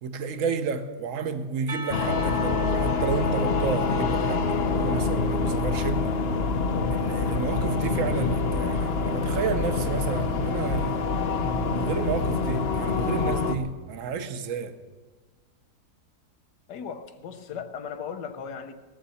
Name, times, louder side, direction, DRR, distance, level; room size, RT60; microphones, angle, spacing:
voice 1, 0.0-6.2 6.9-11.1 11.7-14.8, right 5 dB, 55° right, 1.1 m, -31 dB
Percussion, 1.7-5.6, right 2 dB, 35° right, 0.7 m, -41 dB
sound 1, 1.9-13.6, left 4 dB, 55° left, 0.7 m, -26 dB
voice 2, 16.7-18.7, left 7 dB, 90° left, 1.5 m, -37 dB
18.0 x 14.0 x 4.2 m
omnidirectional pair, 1.8 m